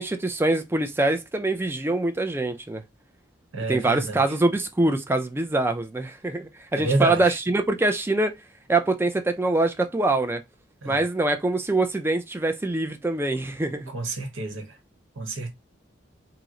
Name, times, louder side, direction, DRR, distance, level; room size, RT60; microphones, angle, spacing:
voice 1, 0.0-2.8 3.7-8.3 8.7-10.4 10.9-13.9, right 2 dB, 10° right, 0.3 m, -24 dB
voice 2, 3.5-4.4 6.7-7.4 10.8-11.0 13.9-14.8 15.2-15.5, right 2 dB, 80° right, 1.0 m, -29 dB
2.9 x 2.0 x 3.6 m
head